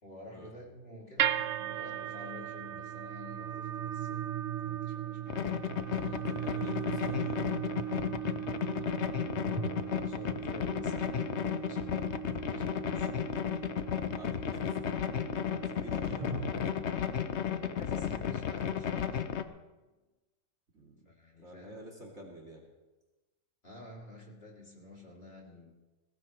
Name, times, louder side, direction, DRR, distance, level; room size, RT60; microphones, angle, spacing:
voice 1, 0.0-5.6 8.9-13.1 15.4-15.9 17.6-19.2 21.0-21.8 23.6-25.7, left 1 dB, 35° left, -2 dB, 3.1 m, -51 dB
sound 1, 1.2-17.4, right 11 dB, 85° right, 0.6 m, -38 dB
sound 2, 1.6-4.9 9.4-12.4 12.7-12.8 16.1-19.4, right 2 dB, 15° right, 4.6 m, -46 dB
sound 3, 5.3-19.4, left 8 dB, 55° left, 0.8 m, -34 dB
voice 2, 5.9-7.4 14.1-14.9 15.8-16.5 20.7-21.1 21.4-22.6, equal, 40° right, -1 dB, 2.4 m, -49 dB
21.0 x 16.5 x 3.2 m, 1.2 s
omnidirectional pair, 1.9 m